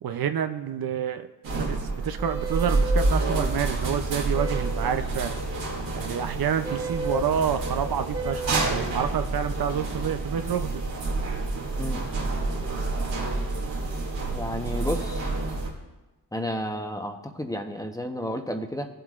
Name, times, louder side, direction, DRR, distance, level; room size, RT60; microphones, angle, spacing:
voice 1, 0.0-5.4 5.9-10.7, right 8 dB, 60° right, 8 dB, 0.6 m, -28 dB
sound 1, 1.4-15.7, right 2 dB, 85° right, 2.5 m, -28 dB
sound 2, 2.2-3.1 4.3-4.9 6.6-7.3 8.1-8.8, right 2 dB, 10° right, 1.4 m, -33 dB
voice 2, 14.3-15.3 16.3-18.9, equal, 10° left, 4 dB, 0.9 m, -31 dB
16.0 x 7.8 x 2.5 m, 1.1 s
cardioid pair, 70°, 42 cm